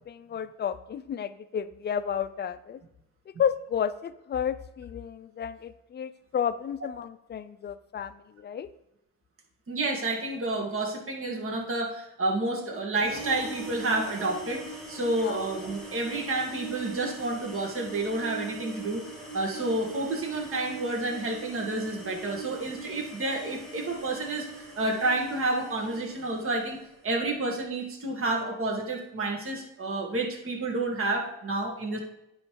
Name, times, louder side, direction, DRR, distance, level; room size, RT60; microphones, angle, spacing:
voice 1, 0.1-2.8 3.3-8.7 15.1-15.4, left 8 dB, 35° left, 13 dB, 0.5 m, -32 dB
voice 2, 9.7-19.0 19.3-26.8 27.0-32.0, right 2 dB, 45° right, -1 dB, 1.8 m, -30 dB
sound 1, 13.0-26.9, right 2 dB, ahead, 2.2 m, -42 dB
9.7 x 3.2 x 4.7 m, 0.84 s
cardioid pair, 90°, 30 cm